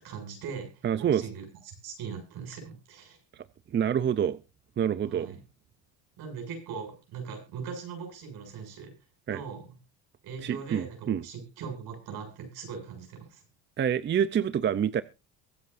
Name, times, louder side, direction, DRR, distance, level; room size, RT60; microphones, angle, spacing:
voice 1, 0.0-3.2 5.1-5.4 6.2-8.9 9.3-9.7 10.2-13.4, right 6 dB, 65° right, 7.2 m, -40 dB
voice 2, 0.8-1.2 3.7-4.4 4.8-5.4 9.3-9.4 10.4-11.2 13.8-15.0, right 9 dB, 30° right, 0.6 m, -27 dB
23.5 x 8.4 x 2.6 m
cardioid pair, 110°, 39 cm